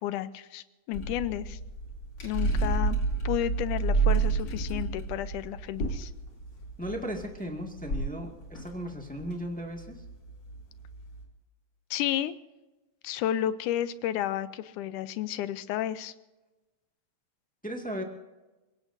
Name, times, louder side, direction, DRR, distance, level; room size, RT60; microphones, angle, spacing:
voice 1, 0.0-1.6 2.2-3.0 3.2-6.1 11.9-12.3 13.0-16.1, left 12 dB, 75° left, 13 dB, 2.0 m, -32 dB
sound 1, 0.9-11.2, right 4 dB, 35° left, 3.4 m, -31 dB
voice 2, 6.8-10.0 17.6-18.0, equal, 5° left, 1 dB, 0.7 m, -36 dB
29.0 x 17.0 x 2.7 m, 1.1 s
omnidirectional pair, 3.9 m